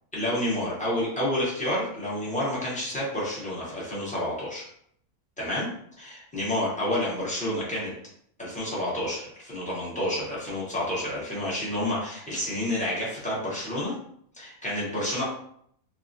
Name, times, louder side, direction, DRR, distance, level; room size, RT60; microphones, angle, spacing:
voice 1, 0.1-4.6 5.4-5.7 6.0-7.9 8.4-13.9 14.3-15.2, left 1 dB, 5° left, -7 dB, 0.7 m, -29 dB
3.3 x 2.1 x 2.6 m, 0.67 s
omnidirectional pair, 1.6 m